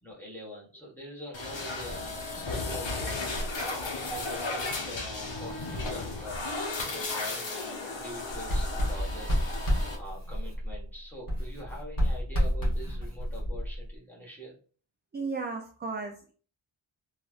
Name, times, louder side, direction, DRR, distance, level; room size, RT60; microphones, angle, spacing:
voice 1, 0.0-3.4 4.1-9.3 10.0-14.6, left 1 dB, 5° left, -5 dB, 1.4 m, -44 dB
sound 1, 1.3-9.9, left 3 dB, 60° left, 0.9 m, -34 dB
Writing, 8.3-10.9 11.3-14.0, equal, 40° left, 1.4 m, -30 dB
voice 2, 15.1-16.3, right 4 dB, 25° right, 3 dB, 0.3 m, -34 dB
3.1 x 2.4 x 2.4 m, 0.39 s
wide cardioid pair, 75°, 49 cm